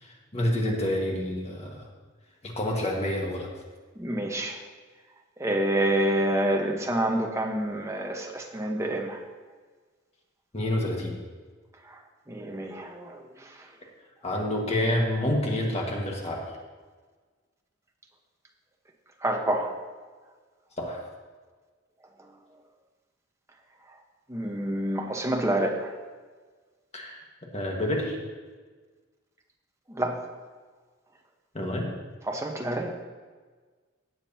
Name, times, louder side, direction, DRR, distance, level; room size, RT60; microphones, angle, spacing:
voice 1, 0.0-1.9 2.4-3.5 10.5-11.2 14.2-16.6 20.8-21.0 26.9-27.2 27.5-28.2 31.5-31.9, left 1 dB, 35° left, -1 dB, 1.6 m, -28 dB
voice 2, 4.0-4.6 5.4-9.2 12.3-13.2 19.2-19.7 24.3-25.9 30.0-30.2 32.3-33.0, right 1 dB, 15° right, 2 dB, 1.1 m, -27 dB
17.5 x 7.5 x 2.9 m, 1.4 s
head